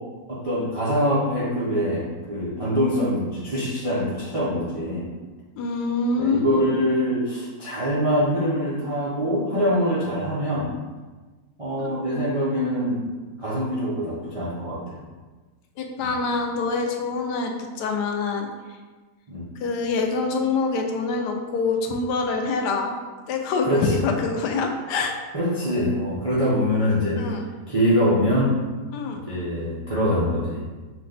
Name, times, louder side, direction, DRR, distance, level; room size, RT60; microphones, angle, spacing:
voice 1, 0.3-5.1 6.2-10.7 11.6-13.0 13.4-15.0 16.0-16.1 19.3-19.5 23.6-24.0 25.3-27.2 27.7-28.6 29.1-30.6, equal, 45° right, -8 dB, 0.4 m, -24 dB
voice 2, 5.6-6.6 15.8-18.5 19.6-23.0 23.3-25.1 27.2-27.4 28.9-29.2, left 4 dB, 85° left, 3 dB, 1.2 m, -25 dB
5.0 x 2.2 x 3.9 m, 1.3 s
omnidirectional pair, 1.8 m